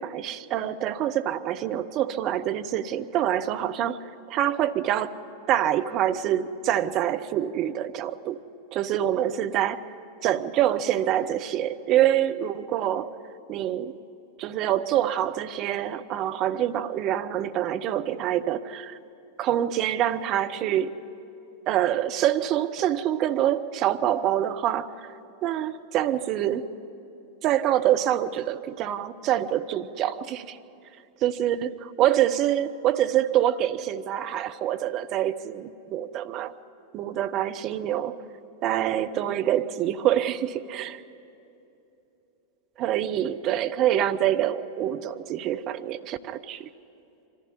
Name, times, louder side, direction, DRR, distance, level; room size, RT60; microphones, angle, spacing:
voice 1, 0.0-5.1 5.5-8.4 8.7-9.8 10.2-13.1 13.5-14.0 14.4-19.0 19.4-21.0 21.7-25.1 25.4-26.7 27.4-30.6 31.2-36.5 36.9-38.2 38.6-41.0 42.8-46.7, right 11 dB, 35° right, 8 dB, 0.9 m, -26 dB
25.0 x 15.0 x 9.9 m, 2.8 s
figure-of-eight pair, 90°, 0 cm